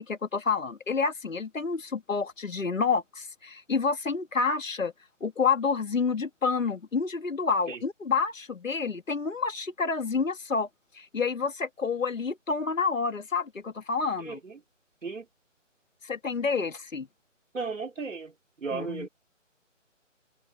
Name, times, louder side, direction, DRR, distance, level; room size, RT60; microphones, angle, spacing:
voice 1, 0.0-4.9 5.2-10.7 11.0-14.4 16.0-17.1 18.7-19.1, left 5 dB, 80° left, 2.3 m, -29 dB
voice 2, 14.2-14.6 15.0-15.2 17.5-18.3 18.6-19.1, right 4 dB, 75° right, 4.6 m, -35 dB
figure-of-eight pair, 160°, 38 cm